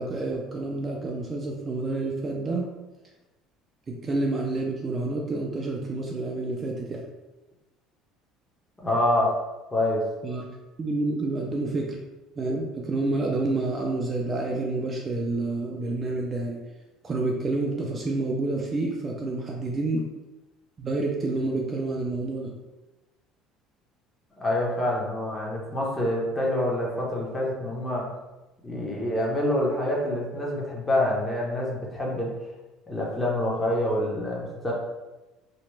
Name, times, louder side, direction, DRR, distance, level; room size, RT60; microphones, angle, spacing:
voice 1, 0.0-2.7 3.9-7.1 10.2-12.0 12.4-16.6 17.0-20.1 20.8-22.5, right 2 dB, 25° right, -1 dB, 0.3 m, -29 dB
voice 2, 8.8-9.3 9.7-10.0 24.4-28.1 28.6-32.3 32.9-34.7, left 1 dB, 15° left, -3 dB, 0.7 m, -26 dB
2.9 x 2.1 x 3.1 m, 1.1 s
cardioid pair, 130°, 0 cm